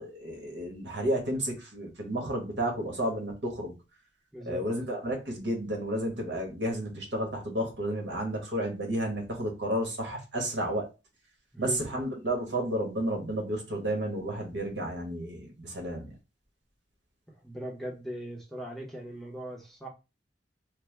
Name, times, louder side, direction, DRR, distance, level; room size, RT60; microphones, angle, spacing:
voice 1, 0.0-3.8 4.4-10.9 11.6-16.1, right 1 dB, 75° right, 1.3 m, -32 dB
voice 2, 4.3-4.6 11.5-11.8 17.3-19.9, equal, ahead, 0.7 m, -39 dB
3.3 x 2.0 x 3.2 m
head